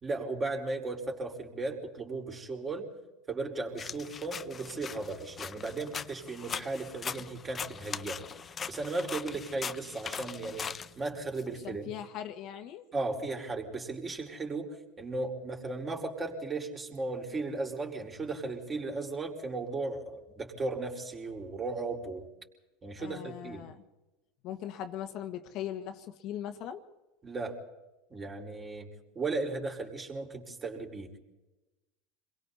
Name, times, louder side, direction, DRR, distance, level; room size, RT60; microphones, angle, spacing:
voice 1, 0.0-2.9 3.3-8.2 8.7-11.9 12.9-22.3 22.8-23.7 27.2-27.6 28.1-31.1, right 3 dB, 25° right, 1 dB, 4.7 m, -36 dB
sound 1, 3.8-11.4, left 6 dB, 30° left, 0.7 m, -40 dB
voice 2, 11.6-12.9 23.0-23.8 24.4-26.8, left 10 dB, 55° left, 6 dB, 1.7 m, -39 dB
28.0 x 22.0 x 4.2 m, 1.1 s
hypercardioid pair, 90°, 0 cm